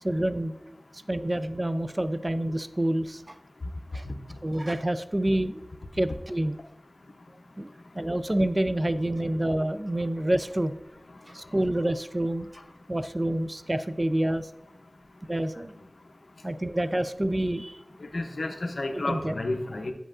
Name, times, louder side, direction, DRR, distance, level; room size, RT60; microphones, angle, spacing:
voice 1, 0.0-0.8 1.1-3.3 3.9-4.1 4.4-5.7 5.9-6.6 7.6-7.7 8.0-10.8 11.3-12.5 12.9-14.5 15.3-15.7 16.4-17.8 19.1-19.3, right 1 dB, 30° right, 11 dB, 0.4 m, -27 dB
voice 2, 18.0-19.9, left 2 dB, 80° left, 6 dB, 0.6 m, -31 dB
8.5 x 5.3 x 2.4 m, 0.99 s
wide cardioid pair, 50°, 0 cm